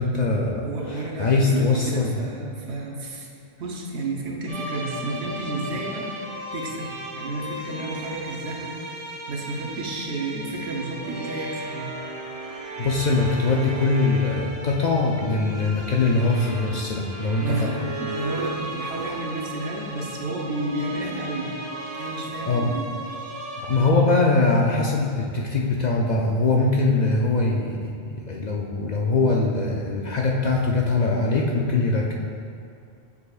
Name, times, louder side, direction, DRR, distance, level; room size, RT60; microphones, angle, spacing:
voice 1, 0.0-2.2 12.8-17.7 22.3-22.7 23.6-32.1, left 3 dB, 55° left, -2 dB, 0.5 m, -22 dB
voice 2, 0.6-3.3 3.6-8.8 9.3-11.9 17.4-21.5 22.0-22.9, right 2 dB, 80° right, 0 dB, 1.1 m, -31 dB
sound 1, 4.5-23.9, right 1 dB, 40° right, 0.7 m, -35 dB
6.9 x 6.8 x 2.3 m, 2.4 s
omnidirectional pair, 1.1 m